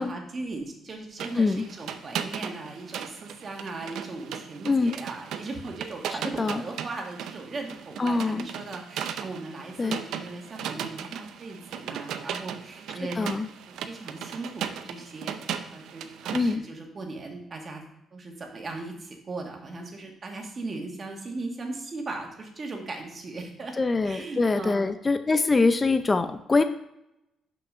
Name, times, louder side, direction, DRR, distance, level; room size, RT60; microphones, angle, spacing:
voice 1, 0.0-13.3 13.7-17.8 18.1-23.7 24.0-25.0, right 3 dB, 40° right, 2 dB, 1.8 m, -38 dB
sound 1, 1.2-16.5, right 8 dB, 80° right, 0.6 m, -37 dB
voice 2, 8.0-8.5 9.8-10.0 13.2-13.5 16.3-16.6 23.8-26.6, left 3 dB, 25° left, 10 dB, 0.5 m, -24 dB
6.1 x 5.9 x 5.5 m, 0.86 s
cardioid pair, 90°, 0 cm